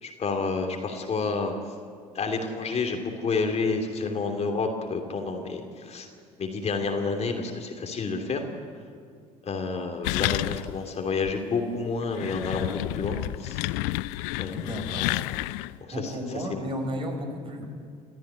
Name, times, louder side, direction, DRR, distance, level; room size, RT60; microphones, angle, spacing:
voice 1, 0.0-1.5 2.1-6.1 6.4-8.4 9.4-13.7 14.4-15.3 15.9-16.7, left 4 dB, 35° left, 4 dB, 3.0 m, -30 dB
sound 1, 10.0-10.9 11.3-11.4 12.0-15.8, left 19 dB, 60° left, 0.6 m, -30 dB
voice 2, 14.5-15.1 15.9-17.6, equal, 30° right, 3 dB, 6.1 m, -33 dB
28.5 x 14.5 x 9.6 m, 2.2 s
figure-of-eight pair, 60°, 19 cm